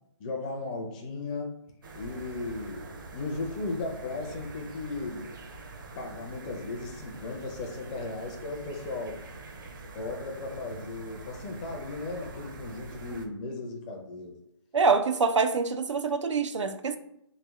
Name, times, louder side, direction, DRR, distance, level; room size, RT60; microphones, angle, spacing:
voice 1, 0.2-1.6 1.9-5.3 6.0-9.2 9.9-14.4, left 3 dB, 15° left, 0.5 m, -36 dB
sound 1, 1.8-13.3, right 3 dB, 45° right, 0.6 m, -45 dB
voice 2, 14.7-17.0, right 4 dB, 80° right, 0.5 m, -25 dB
3.3 x 3.2 x 3.4 m
hypercardioid pair, 160°, 15 cm